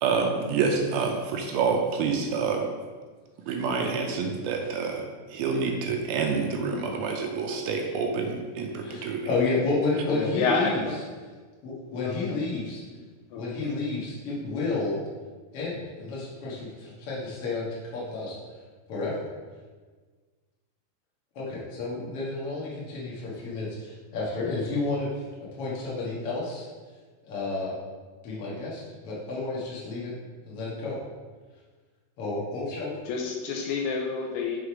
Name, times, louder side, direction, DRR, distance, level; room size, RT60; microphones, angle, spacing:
voice 1, 0.0-2.7 3.5-9.3, right 5 dB, 80° right, 2 dB, 2.3 m, -27 dB
voice 2, 8.8-10.8 11.6-12.9 13.3-15.0 15.5-18.4 18.9-19.3 21.3-25.3 25.5-26.7 27.2-27.8 28.2-30.1 30.4-31.0 32.2-33.0, left 3 dB, 65° left, -6 dB, 1.4 m, -31 dB
voice 3, 10.1-11.0 11.9-13.0 13.3-13.8 33.1-34.6, left 4 dB, 80° left, 0 dB, 2.4 m, -30 dB
6.3 x 5.1 x 4.7 m, 1.4 s
omnidirectional pair, 4.8 m